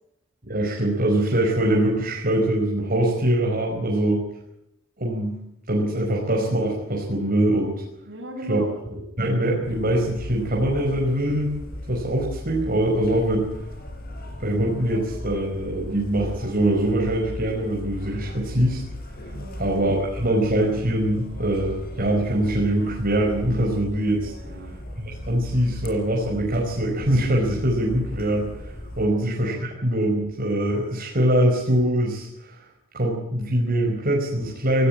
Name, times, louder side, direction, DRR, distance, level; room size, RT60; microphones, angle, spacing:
voice 1, 0.4-4.2 5.0-5.4 5.7-7.7 8.5-8.6 9.2-11.6 11.9-13.5 14.4-18.8 19.6-24.3 25.0-32.6 32.9-34.9, right 1 dB, 45° right, -2 dB, 5.0 m, -23 dB
voice 2, 8.1-8.8 14.9-15.2 19.3-19.7 24.3-24.7 29.0-29.6, right 1 dB, 65° right, -5 dB, 7.4 m, -39 dB
sound 1, 9.6-29.1, left 1 dB, 50° left, 5.0 m, -37 dB
18.5 x 17.5 x 8.9 m, 0.83 s
head